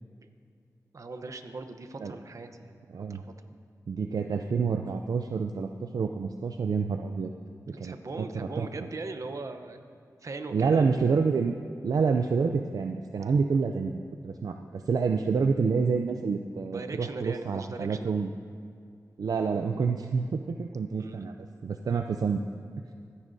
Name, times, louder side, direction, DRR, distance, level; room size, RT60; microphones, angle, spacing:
voice 1, 0.9-2.8 3.1-3.2 7.7-9.9 10.2-11.2 16.7-18.4 21.0-21.2, right 3 dB, 55° right, 7 dB, 0.8 m, -40 dB
voice 2, 3.9-7.3 7.8-8.7 10.5-11.6 11.8-18.3 19.2-22.4, right 5 dB, 75° right, 5 dB, 0.4 m, -28 dB
24.5 x 9.8 x 2.7 m, 2.3 s
wide cardioid pair, 90°, 6 cm